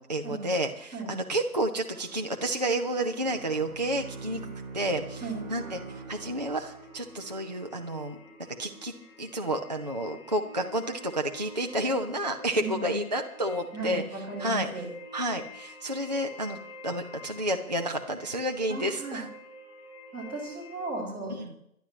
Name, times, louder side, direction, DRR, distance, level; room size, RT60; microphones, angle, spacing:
voice 1, 0.0-4.4 4.7-8.2 8.6-14.0 14.4-14.8 15.1-19.3 21.4-21.5, right 1 dB, 30° right, 3 dB, 0.5 m, -30 dB
sound 1, 1.9-20.9, left 1 dB, 80° left, 5.1 m, -48 dB
Bowed string instrument, 3.2-7.2, right 4 dB, 60° right, 1.8 m, -43 dB
voice 2, 12.6-13.0 13.7-14.9 18.7-19.2 20.1-21.6, right 2 dB, ahead, -11 dB, 4.7 m, -36 dB
24.0 x 11.5 x 3.2 m, 0.72 s
figure-of-eight pair, 155°, 46 cm